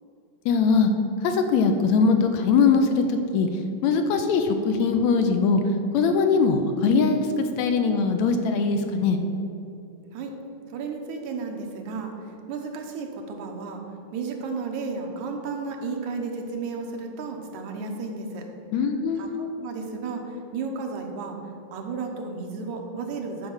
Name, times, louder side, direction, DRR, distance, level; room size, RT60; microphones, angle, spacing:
voice 1, 0.5-0.9 1.2-3.5 3.8-5.6 5.9-9.2 18.7-19.4, left 5 dB, 80° left, 6 dB, 1.8 m, -21 dB
voice 2, 10.7-12.1 12.5-13.8 14.1-18.5 19.2-21.4 21.7-23.5, right 4 dB, 80° right, 3 dB, 2.4 m, -33 dB
9.9 x 4.7 x 7.2 m, 2.8 s
omnidirectional pair, 3.4 m